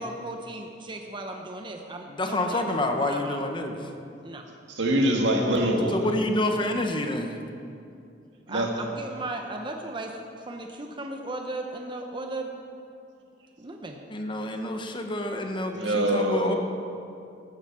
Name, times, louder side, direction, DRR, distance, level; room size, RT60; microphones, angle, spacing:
voice 1, 0.0-2.6 3.1-3.4 4.2-4.5 8.5-12.5 13.6-14.0, right 2 dB, 25° right, 3 dB, 0.9 m, -36 dB
voice 2, 2.1-3.9 5.9-7.4 14.1-16.5, left 1 dB, 25° left, 4 dB, 1.0 m, -28 dB
voice 3, 4.7-6.1 8.5-8.7 15.7-16.5, right 1 dB, 80° right, 1 dB, 2.1 m, -24 dB
13.0 x 9.8 x 7.5 m, 2.5 s
head